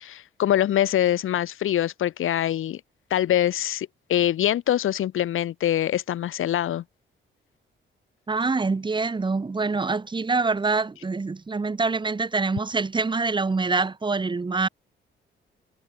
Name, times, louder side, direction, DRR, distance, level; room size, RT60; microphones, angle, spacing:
voice 1, 0.0-2.8 3.1-6.8, left 11 dB, 90° left, 4.2 m, -24 dB
voice 2, 8.3-14.7, right 4 dB, 25° right, 4.1 m, -25 dB
wide cardioid pair, 150°, 20 cm